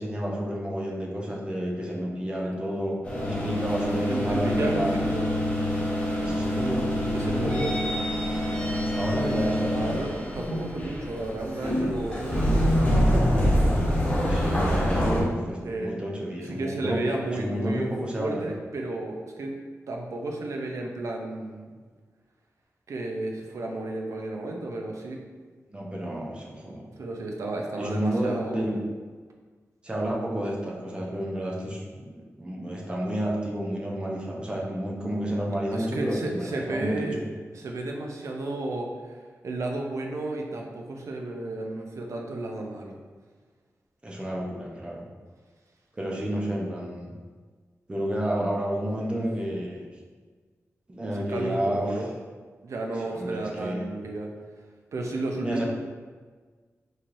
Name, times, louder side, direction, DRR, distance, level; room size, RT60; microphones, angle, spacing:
voice 1, 0.0-3.0 3.3-4.9 6.2-7.7 8.9-9.8 12.9-13.3 14.2-17.0 17.3-18.5 25.7-26.8 27.8-28.8 29.8-37.0 44.0-45.0 45.9-47.1 47.9-49.8 50.9-51.8 53.1-53.9 55.4-55.7, right 1 dB, 20° right, -3 dB, 0.7 m, -30 dB
sound 1, 3.0-15.2, equal, 20° left, 0.9 m, -26 dB
voice 2, 4.0-5.3 7.1-7.9 9.6-12.5 15.6-15.9 16.4-17.9 18.2-19.6 19.9-21.8 22.9-25.2 27.0-28.7 35.7-37.2 37.5-43.0 51.1-52.1 52.6-54.3 54.9-55.7, right 2 dB, 70° right, 1 dB, 0.5 m, -33 dB
4.2 x 3.1 x 2.6 m, 1.5 s
wide cardioid pair, 135°, 5 cm